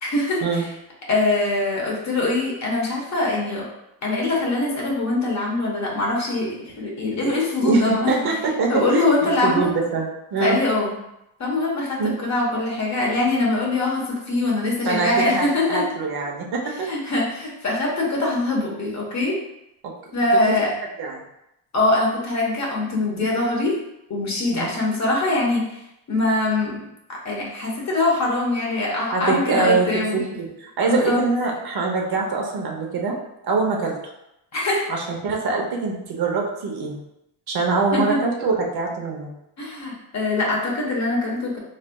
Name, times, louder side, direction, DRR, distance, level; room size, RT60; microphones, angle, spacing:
voice 1, 0.0-0.7 1.1-3.7 4.0-8.2 8.7-9.7 10.4-10.9 11.4-15.9 16.9-19.4 20.1-20.7 21.7-23.8 24.1-25.6 26.1-26.9 27.2-30.2 30.8-31.2 34.5-34.8 37.9-38.2 39.6-41.6, left 2 dB, 40° left, -3 dB, 1.2 m, -23 dB
voice 2, 7.6-10.6 12.0-12.2 14.9-16.9 21.0-21.2 23.2-23.4 24.5-24.7 29.1-29.9 30.1-33.1 33.4-33.9 34.9-37.0 37.5-39.3, right 4 dB, 60° right, -1 dB, 0.9 m, -24 dB
4.0 x 3.3 x 2.3 m, 0.85 s
cardioid pair, 110°, 42 cm